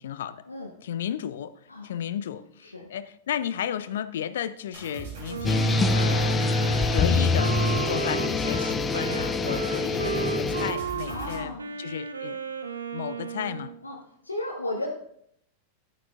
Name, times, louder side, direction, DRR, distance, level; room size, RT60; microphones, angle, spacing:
voice 1, 0.0-0.4 0.8-1.5 1.8-6.6 6.9-12.4 12.9-13.7, left 9 dB, 60° left, 0.5 m, -34 dB
sound 1, 4.7-11.5, right 4 dB, 55° right, 3.4 m, -40 dB
Wind instrument woodwind instrument, 5.3-13.8, right 6 dB, 75° right, 0.7 m, -34 dB
sound 2, 5.4-10.7, left 3 dB, 15° left, 0.6 m, -25 dB
voice 2, 11.1-11.7 13.8-14.0 14.2-14.9, left 2 dB, 80° left, 1.0 m, -34 dB
12.0 x 9.3 x 2.5 m
figure-of-eight pair, 90°, 0 cm